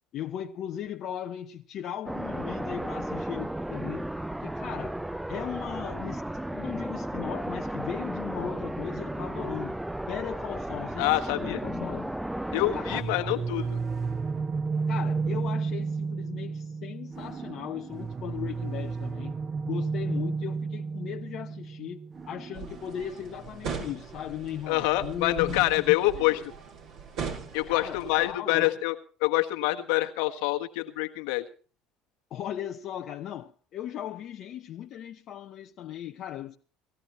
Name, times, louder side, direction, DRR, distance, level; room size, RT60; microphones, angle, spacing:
voice 1, 0.1-4.1 4.4-5.0 5.3-6.2 6.5-9.8 10.1-12.1 12.7-13.3 14.9-22.0 22.3-26.5 27.7-28.8 32.3-36.6, left 10 dB, 55° left, 0.8 m, -37 dB
sound 1, 2.1-13.0, right 1 dB, 5° right, 0.6 m, -34 dB
voice 2, 11.0-11.6 12.5-13.8 24.7-26.4 27.5-28.9 29.2-31.4, left 17 dB, 75° left, 1.4 m, -26 dB
sound 2, 12.9-25.7, right 4 dB, 35° right, 1.5 m, -33 dB
sound 3, 22.5-28.3, right 6 dB, 65° right, 4.3 m, -40 dB
18.5 x 14.0 x 4.3 m
hypercardioid pair, 65°, 0 cm